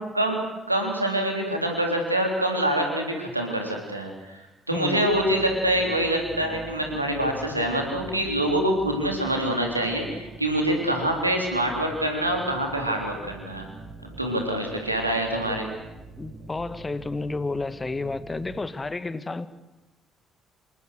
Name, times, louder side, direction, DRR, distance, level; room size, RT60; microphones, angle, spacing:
voice 1, 0.0-13.7 14.2-15.7, right 1 dB, 90° right, 3.6 m, -25 dB
voice 2, 4.7-5.1 16.2-19.5, left 3 dB, 20° left, 1.8 m, -31 dB
sound 1, 5.1-18.6, right 4 dB, 65° right, 7.4 m, -44 dB
27.5 x 25.0 x 6.6 m
figure-of-eight pair, 45°, 0 cm